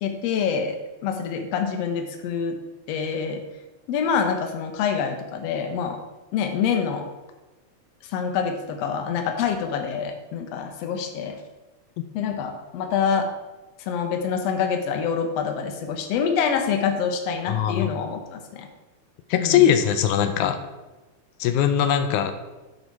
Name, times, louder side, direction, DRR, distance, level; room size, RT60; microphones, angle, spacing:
voice 1, 0.0-2.6 2.9-3.4 3.9-6.0 6.3-7.1 8.0-11.4 12.1-13.2 13.9-18.7 19.4-19.7, left 6 dB, 65° left, 6 dB, 1.9 m, -26 dB
voice 2, 17.5-17.9 19.3-20.6 21.4-22.3, left 9 dB, 90° left, 8 dB, 2.0 m, -20 dB
11.0 x 5.1 x 4.7 m, 1.1 s
omnidirectional pair, 3.4 m